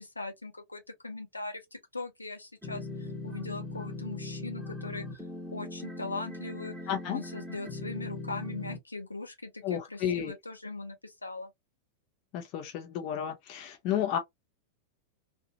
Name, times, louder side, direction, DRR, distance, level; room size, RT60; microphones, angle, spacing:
voice 1, 0.0-5.2 5.5-6.7 7.1-11.5, left 3 dB, 80° left, 0.7 m, -40 dB
sound 1, 2.6-8.8, left 2 dB, ahead, 0.9 m, -40 dB
voice 2, 6.9-7.2 9.6-10.3 12.3-14.2, left 9 dB, 40° left, 0.6 m, -32 dB
2.7 x 2.2 x 2.7 m
figure-of-eight pair, 90°, 0 cm